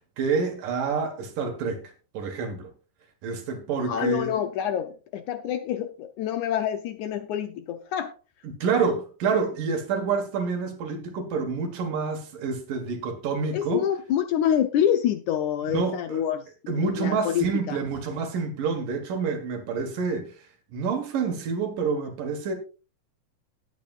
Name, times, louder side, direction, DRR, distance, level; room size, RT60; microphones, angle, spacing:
voice 1, 0.2-1.8 2.1-2.7 3.2-4.3 8.4-13.8 15.6-16.2 16.7-20.3 20.7-22.5, right 5 dB, 75° right, 3.3 m, -28 dB
voice 2, 3.9-8.1 13.5-16.5 16.7-17.8, left 10 dB, 75° left, 1.9 m, -27 dB
18.5 x 8.0 x 2.5 m
omnidirectional pair, 4.0 m